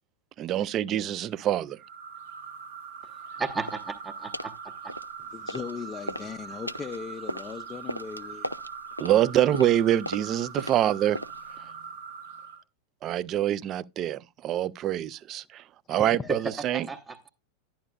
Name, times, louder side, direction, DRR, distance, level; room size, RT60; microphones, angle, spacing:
voice 1, 0.4-1.8 9.0-11.2 13.0-16.9, right 11 dB, 30° right, 0.5 m, -25 dB
sound 1, 1.8-12.6, right 6 dB, 60° right, 1.1 m, -42 dB
voice 2, 3.3-4.9 16.7-17.3, right 4 dB, 15° right, 0.9 m, -35 dB
sound 2, 3.7-3.9 4.3-4.6 4.9-5.7 6.0-11.6, equal, 90° left, 0.5 m, -37 dB
voice 3, 5.2-8.5 15.9-16.3, left 6 dB, 20° left, 0.6 m, -38 dB
12.0 x 10.0 x 2.3 m
figure-of-eight pair, 90°, 0 cm